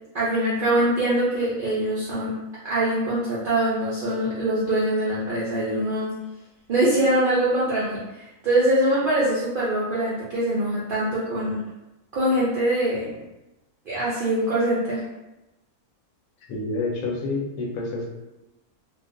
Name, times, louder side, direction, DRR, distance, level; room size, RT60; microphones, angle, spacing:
voice 1, 0.1-2.3 2.6-6.1 6.7-11.6 12.1-13.1 13.9-15.0, right 1 dB, 65° right, -8 dB, 0.5 m, -23 dB
voice 2, 16.5-18.1, left 3 dB, 80° left, -2 dB, 1.0 m, -28 dB
2.4 x 2.2 x 2.4 m, 0.99 s
omnidirectional pair, 1.5 m